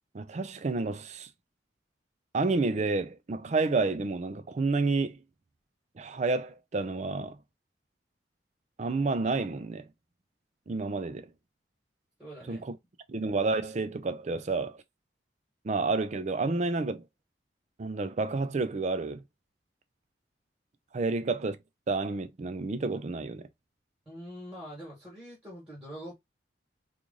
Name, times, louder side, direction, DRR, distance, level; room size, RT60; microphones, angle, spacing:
voice 1, 0.1-1.3 2.3-5.2 6.0-7.4 8.8-9.9 10.7-11.3 12.5-12.6 13.1-14.8 15.6-17.1 17.8-19.2 20.9-21.6 21.9-23.5, right 3 dB, 40° right, 0.4 m, -30 dB
voice 2, 12.2-12.6 24.0-26.1, equal, 5° right, 1.4 m, -44 dB
3.1 x 2.5 x 3.7 m
head